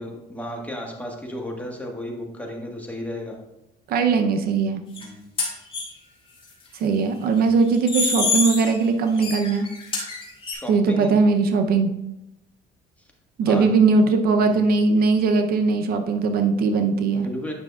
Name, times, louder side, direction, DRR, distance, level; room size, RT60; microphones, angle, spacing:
voice 1, 0.0-3.4 5.0-5.3 10.5-11.1 13.4-13.7 14.5-14.6 17.1-17.5, equal, 10° left, 0 dB, 1.4 m, -34 dB
voice 2, 3.9-4.8 6.8-9.7 10.7-11.9 13.4-17.3, right 4 dB, 65° right, 6 dB, 0.7 m, -20 dB
sound 1, 5.0-5.1 5.4-5.8 7.7-8.8 9.2-10.5, left 3 dB, 30° left, 2.3 m, -25 dB
9.5 x 5.6 x 2.4 m, 0.87 s
cardioid pair, 110°, 17 cm